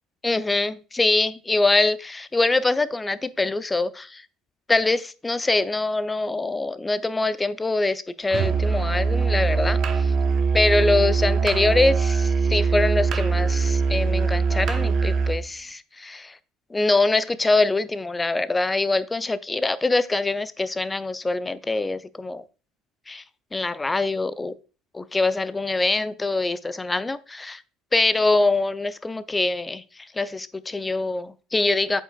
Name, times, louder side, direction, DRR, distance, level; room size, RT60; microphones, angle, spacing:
voice 1, 0.2-4.3 4.7-10.1 10.5-16.4 16.7-22.4 23.1-23.2 23.5-24.5 24.9-27.6 27.9-32.0, left 2 dB, 15° left, 16 dB, 0.5 m, -24 dB
Musical instrument, 8.3-15.4, right 5 dB, 45° right, 0.9 m, -22 dB
8.2 x 5.5 x 2.4 m, 0.35 s
figure-of-eight pair, 60°, 0 cm